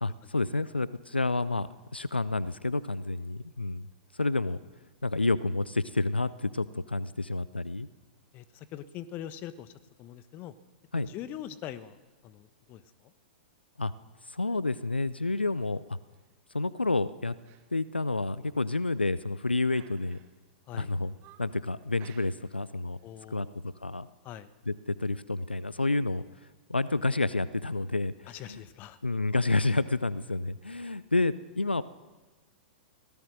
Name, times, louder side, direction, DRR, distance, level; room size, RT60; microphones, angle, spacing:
voice 1, 0.0-3.9 4.1-4.6 5.0-7.9 10.9-11.1 13.8-13.9 14.3-16.0 16.5-17.3 17.7-20.2 20.7-21.1 21.4-23.0 23.3-24.1 24.7-26.2 26.7-28.6 29.0-31.8, left 2 dB, 85° left, 17 dB, 0.6 m, -29 dB
voice 2, 8.3-9.7 10.0-10.5 10.9-13.1 20.7-20.9 23.0-23.6 24.2-24.5 28.3-29.0, left 11 dB, 35° left, 14 dB, 1.2 m, -43 dB
sound 1, 15.3-15.7 16.1-16.3 16.8-17.0 17.4-17.7 18.0-18.1 18.7-19.2 19.7-20.5 20.9-21.6 22.0-22.7 22.9-23.2, right 11 dB, 35° right, 1.9 m, -58 dB
24.0 x 18.0 x 6.4 m, 1.2 s
figure-of-eight pair, 100°, 5 cm